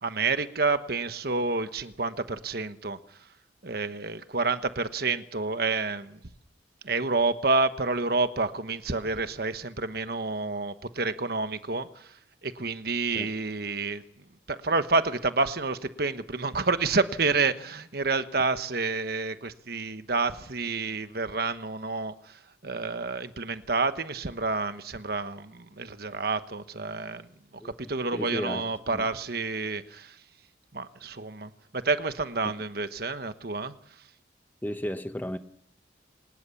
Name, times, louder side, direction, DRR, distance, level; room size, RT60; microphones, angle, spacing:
voice 1, 0.0-3.0 3.6-6.2 6.8-12.2 12.4-14.0 14.5-27.3 27.5-30.2 30.7-33.7, right 3 dB, 55° right, 1.2 m, -29 dB
voice 2, 27.6-29.1 34.6-35.4, equal, 10° left, 1.0 m, -35 dB
24.0 x 19.5 x 7.1 m
head